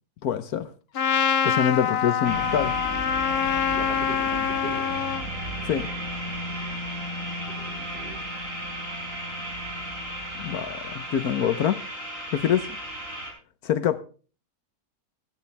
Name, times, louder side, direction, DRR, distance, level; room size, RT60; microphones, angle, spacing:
voice 1, 0.2-0.7 1.4-2.8 5.6-5.9 10.4-11.8 12.3-12.7 13.6-14.0, left 9 dB, 80° left, 1.3 m, -25 dB
Trumpet, 1.0-5.2, left 8 dB, 50° left, 0.8 m, -25 dB
sound 1, 2.2-13.3, equal, 55° right, 5.8 m, -34 dB
voice 2, 3.7-5.0 7.5-8.2, right 3 dB, 35° right, 2.5 m, -39 dB
16.5 x 14.5 x 3.4 m
omnidirectional pair, 1.6 m